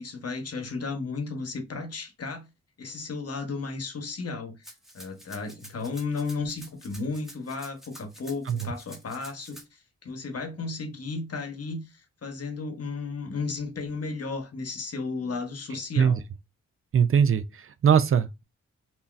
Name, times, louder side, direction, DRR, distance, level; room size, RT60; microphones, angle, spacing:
voice 1, 0.0-2.5 2.8-16.2, left 4 dB, 55° left, 0.9 m, -34 dB
Rattle (instrument), 4.6-9.6, equal, ahead, 1.2 m, -48 dB
voice 2, 16.9-18.4, right 7 dB, 45° right, 0.4 m, -21 dB
3.6 x 2.6 x 2.4 m
cardioid pair, 55°, 30 cm